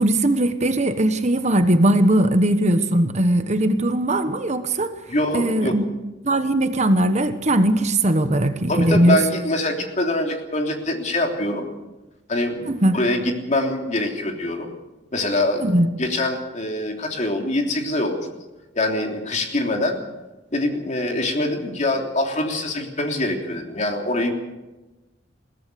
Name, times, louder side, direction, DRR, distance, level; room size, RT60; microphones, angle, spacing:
voice 1, 0.0-4.9 5.3-5.8 6.2-9.2 12.7-13.0 15.6-15.9, right 1 dB, 40° right, 9 dB, 1.2 m, -19 dB
voice 2, 5.1-5.8 8.7-11.7 12.3-14.7 15.1-15.7 16.0-18.2 18.7-20.0 20.5-24.3, left 1 dB, 40° left, 3 dB, 3.3 m, -24 dB
22.0 x 17.0 x 6.9 m, 1.1 s
head